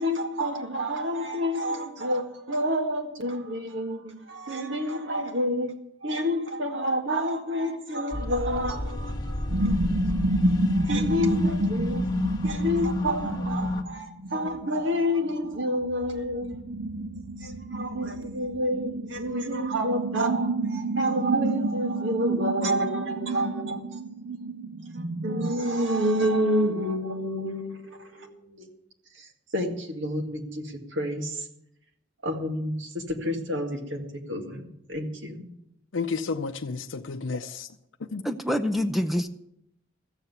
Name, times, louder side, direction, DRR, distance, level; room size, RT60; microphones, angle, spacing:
voice 1, 0.0-5.7 6.0-9.8 10.7-12.1 12.4-24.0 25.2-28.7 29.2-31.5 32.2-35.5, equal, 75° right, 2.0 m, -29 dB
sound 1, 8.1-13.8, left 1 dB, 20° left, 1.1 m, -31 dB
sound 2, 9.5-15.0 15.2-25.5, right 1 dB, 55° right, 0.6 m, -30 dB
voice 2, 35.9-37.7 38.0-38.3, left 4 dB, 80° left, 0.6 m, -31 dB
voice 3, 38.2-39.3, equal, ahead, 0.5 m, -26 dB
14.5 x 7.4 x 8.0 m
head